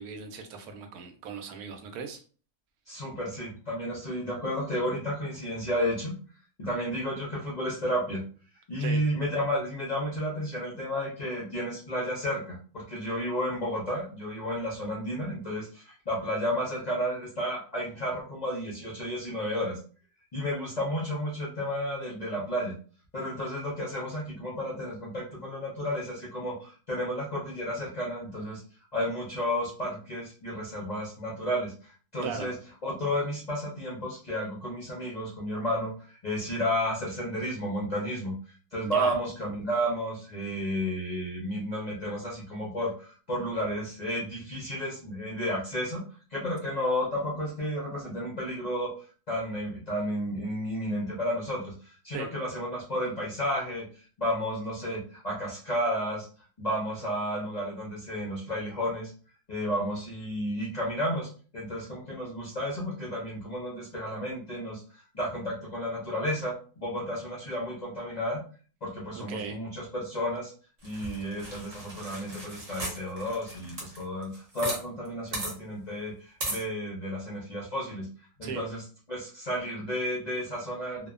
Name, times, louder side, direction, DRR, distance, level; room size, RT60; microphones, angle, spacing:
voice 1, 0.0-2.2 8.8-9.0 32.2-32.5 38.8-39.1 52.1-52.3 69.1-69.6 78.4-78.6, right 5 dB, 75° right, 5 dB, 1.0 m, -38 dB
voice 2, 2.9-6.1 6.6-8.2 8.7-19.8 20.3-22.7 23.1-28.6 28.9-32.5 32.8-38.3 38.7-46.0 46.3-48.9 49.3-53.8 54.2-56.3 56.6-59.1 59.5-64.8 65.1-68.4 68.8-70.5 70.8-78.1 78.4-81.1, equal, 55° left, -5 dB, 0.4 m, -32 dB
sound 1, 70.8-74.8 75.1-75.2 75.3-75.5 76.4-76.6, right 1 dB, 45° right, 0.4 m, -36 dB
2.7 x 2.1 x 2.3 m, 0.40 s
omnidirectional pair, 1.7 m